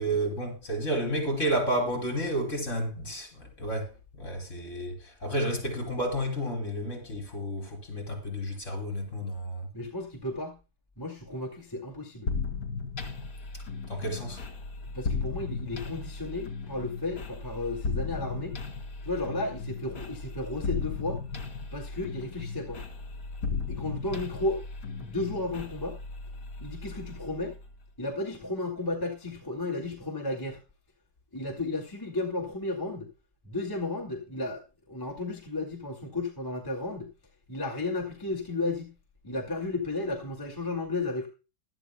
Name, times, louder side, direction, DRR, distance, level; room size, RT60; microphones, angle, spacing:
voice 1, 0.0-9.7 13.9-14.4, right 1 dB, 40° left, 5.4 m, -31 dB
voice 2, 9.7-10.6 11.0-12.3 14.9-18.6 19.0-21.2 21.7-22.8 23.5-24.6 25.0-26.0 26.6-27.5 28.0-30.6 31.3-33.1 33.4-37.1 37.5-38.9 39.2-41.3, left 2 dB, 10° left, 2.0 m, -33 dB
sound 1, 12.3-27.9, left 4 dB, 60° left, 2.8 m, -36 dB
17.0 x 12.5 x 2.2 m
omnidirectional pair, 2.0 m